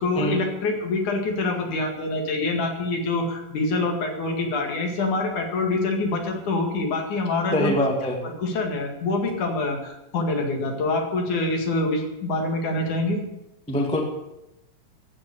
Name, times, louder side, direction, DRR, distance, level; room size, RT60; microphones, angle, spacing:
voice 1, 0.0-7.7 8.2-13.2, left 2 dB, 65° left, 2 dB, 3.5 m, -25 dB
voice 2, 7.5-8.2 13.7-14.0, equal, 5° left, 1 dB, 1.0 m, -23 dB
14.5 x 7.5 x 8.4 m, 0.89 s
omnidirectional pair, 3.9 m